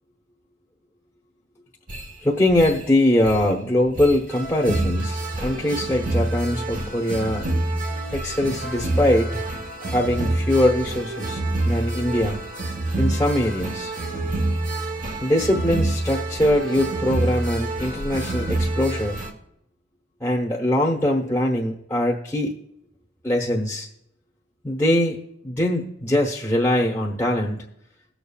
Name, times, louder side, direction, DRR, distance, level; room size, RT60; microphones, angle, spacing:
sound 1, 1.9-2.1 2.5-2.9 3.2-3.5 3.8-19.3, right 2 dB, 45° right, 1.1 m, -27 dB
voice 1, 2.2-7.5 8.1-9.5 9.8-12.4 13.0-13.9 15.2-19.2 20.2-22.6 23.2-23.9 24.6-25.2 25.4-27.7, left 1 dB, 10° left, -3 dB, 1.0 m, -22 dB
20.5 x 7.0 x 2.4 m, 0.79 s
head